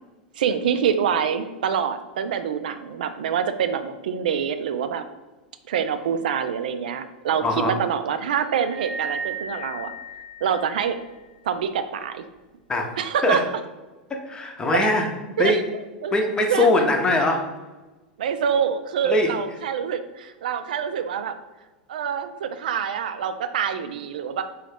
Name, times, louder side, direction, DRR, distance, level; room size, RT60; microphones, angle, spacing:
voice 1, 0.4-5.0 5.7-9.9 10.4-10.9 11.4-12.2 13.0-13.4 14.7-14.9 15.4-15.6 16.0-16.2 16.5-16.7 18.2-21.3 21.9-24.4, right 7 dB, 70° right, 9 dB, 0.3 m, -25 dB
voice 2, 7.4-7.8 12.7-12.9 13.2-13.4 14.1-15.1 15.4-15.6 16.1-17.4 19.0-19.3, left 2 dB, 15° left, 2 dB, 0.7 m, -21 dB
sound 1, 8.5-11.1, right 3 dB, 70° left, 1.1 m, -35 dB
3.9 x 2.3 x 3.3 m, 1.2 s
figure-of-eight pair, 90°, 5 cm